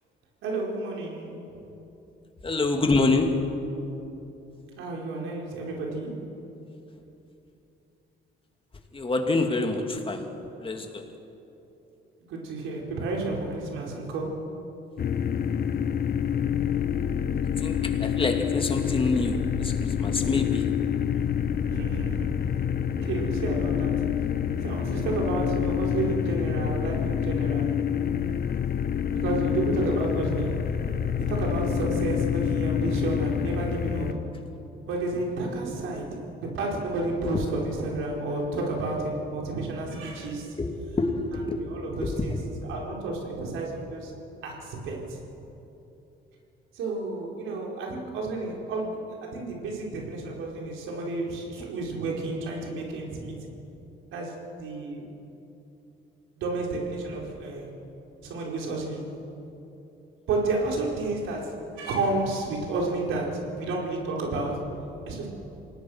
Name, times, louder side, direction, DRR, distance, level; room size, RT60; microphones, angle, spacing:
voice 1, 0.4-1.4 4.8-6.4 12.3-14.6 21.1-21.2 21.7-22.4 22.9-24.2 24.6-27.8 29.1-30.7 31.2-34.3 34.9-40.5 41.6-42.4 42.7-44.1 44.4-45.2 46.7-53.4 54.1-55.0 56.4-57.7 58.2-59.2 60.3-64.7 65.1-65.3, right 2 dB, 90° right, -1 dB, 4.6 m, -31 dB
voice 2, 2.4-3.6 8.9-10.3 10.6-11.1 17.6-20.7 37.2-37.5 40.6-42.4 51.6-51.7, left 3 dB, 25° left, 4 dB, 2.7 m, -27 dB
sound 1, 15.0-34.1, left 8 dB, 50° left, 1.2 m, -27 dB
27.5 x 19.0 x 6.5 m, 3.0 s
cardioid pair, 90°, 20 cm